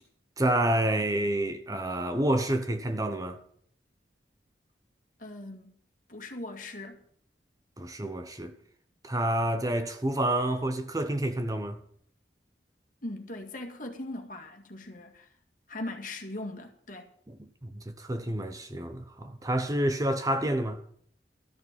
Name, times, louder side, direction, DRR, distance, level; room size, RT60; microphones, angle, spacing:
voice 1, 0.4-3.4 7.8-8.5 9.0-11.8 17.3-20.8, right 1 dB, 20° right, 0.8 m, -29 dB
voice 2, 5.2-5.7 6.1-7.0 13.0-15.3 15.7-17.1, left 2 dB, 50° left, 2.1 m, -39 dB
13.5 x 6.7 x 9.7 m
head